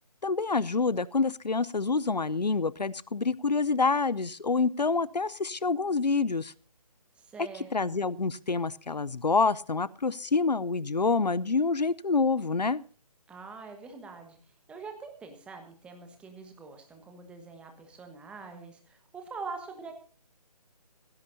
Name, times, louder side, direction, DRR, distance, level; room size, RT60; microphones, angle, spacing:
voice 1, 0.2-6.5 7.7-12.8, left 4 dB, 85° left, 20 dB, 0.7 m, -27 dB
voice 2, 7.2-7.9 13.3-14.4 14.7-19.9, right 4 dB, 5° right, 5 dB, 1.3 m, -44 dB
16.5 x 16.0 x 2.7 m, 0.39 s
figure-of-eight pair, 150°, 21 cm